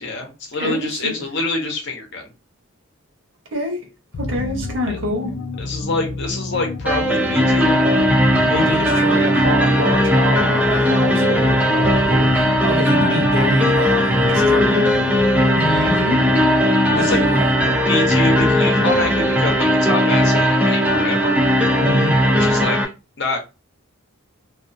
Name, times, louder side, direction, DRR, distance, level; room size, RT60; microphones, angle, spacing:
voice 1, 0.0-2.3 4.9-5.1 5.6-7.8 8.4-8.8 16.9-17.2 17.9-21.4 22.4-22.8 23.2-23.4, left 2 dB, 55° left, 0.7 m, -25 dB
voice 2, 0.6-1.2 3.5-3.9 4.2-5.3 8.5-15.0 15.6-16.2 16.9-17.5 21.8-22.1, right 1 dB, 55° right, 0.8 m, -25 dB
sound 1, 4.1-19.5, left 3 dB, 85° left, 0.4 m, -30 dB
sound 2, 6.9-22.9, equal, 5° right, 0.3 m, -17 dB
2.4 x 2.4 x 2.5 m
head